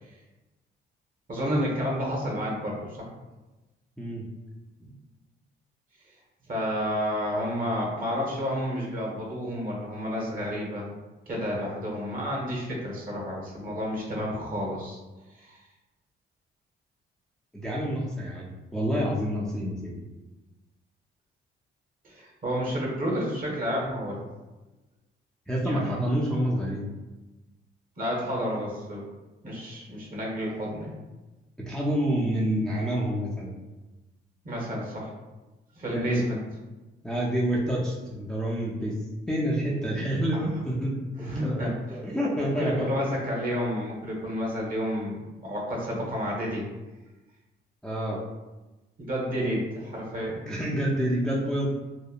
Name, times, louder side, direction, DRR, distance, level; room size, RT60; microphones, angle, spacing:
voice 1, 1.3-3.1 6.5-10.9 11.3-15.0 15.4-15.6 22.0-24.3 25.6-26.0 28.0-29.0 29.4-30.9 34.4-35.1 35.8-36.4 41.2-41.7 42.6-46.6 49.0-50.4, equal, 45° right, -2 dB, 1.0 m, -30 dB
voice 2, 17.5-19.9 25.5-26.9 31.7-33.6 35.9-36.3 37.0-39.0 39.3-43.1 47.8-48.2 50.5-51.7, equal, 5° left, -5 dB, 0.4 m, -28 dB
2.9 x 2.1 x 2.4 m, 1.1 s
cardioid pair, 90°, 20 cm